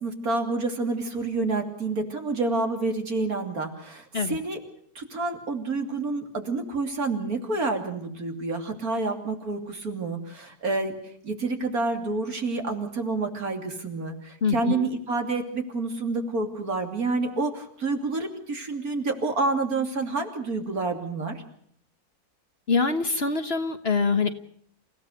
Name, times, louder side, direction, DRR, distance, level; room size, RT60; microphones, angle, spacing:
voice 1, 0.0-4.6 4.9-10.9 11.2-21.4, right 3 dB, 65° right, 5 dB, 3.4 m, -28 dB
voice 2, 14.4-14.8 22.7-24.3, left 4 dB, 40° left, 9 dB, 1.4 m, -24 dB
28.5 x 16.5 x 6.6 m, 0.66 s
omnidirectional pair, 1.7 m